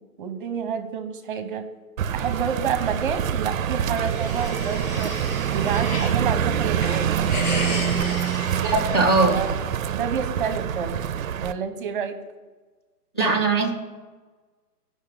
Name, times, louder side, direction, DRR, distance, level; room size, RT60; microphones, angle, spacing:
voice 1, 0.0-1.7 2.1-5.1 5.5-7.3 9.3-9.5 9.9-11.0 11.4-12.2, right 7 dB, 35° right, 8 dB, 0.8 m, -29 dB
sound 1, 2.0-11.5, right 8 dB, 60° right, 0.5 m, -25 dB
sound 2, 3.5-6.2 6.6-9.5, left 2 dB, 70° left, 2.6 m, -35 dB
voice 2, 8.6-9.4 13.1-13.7, right 3 dB, 20° left, -2 dB, 0.5 m, -20 dB
15.0 x 5.6 x 3.6 m, 1.3 s
hypercardioid pair, 150°, 47 cm